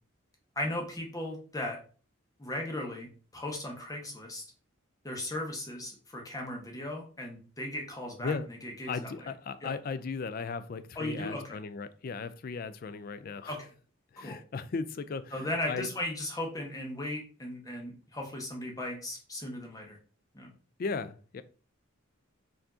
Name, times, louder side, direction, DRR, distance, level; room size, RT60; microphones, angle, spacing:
voice 1, 0.6-1.8 2.4-3.1 3.3-4.4 5.0-8.3 8.6-9.1 9.6-9.7 11.0-11.6 13.5-13.7 14.2-14.4 15.3-20.0 20.3-20.5, left 1 dB, 15° left, 0.9 m, -37 dB
voice 2, 8.9-13.6 14.1-15.9 20.8-21.4, left 4 dB, 45° left, 0.3 m, -36 dB
4.7 x 2.6 x 3.7 m
head